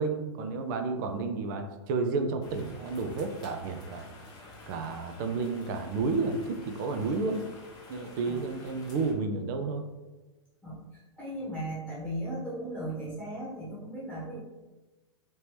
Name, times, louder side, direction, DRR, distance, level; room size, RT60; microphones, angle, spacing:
voice 1, 0.0-4.1 4.7-7.5 7.9-9.8, right 4 dB, 40° right, 6 dB, 0.5 m, -31 dB
sound 1, 2.4-9.1, left 2 dB, 25° left, 0.8 m, -50 dB
voice 2, 10.6-14.4, right 1 dB, ahead, -8 dB, 1.1 m, -37 dB
3.0 x 2.9 x 3.3 m, 1.1 s
figure-of-eight pair, 105°, 15 cm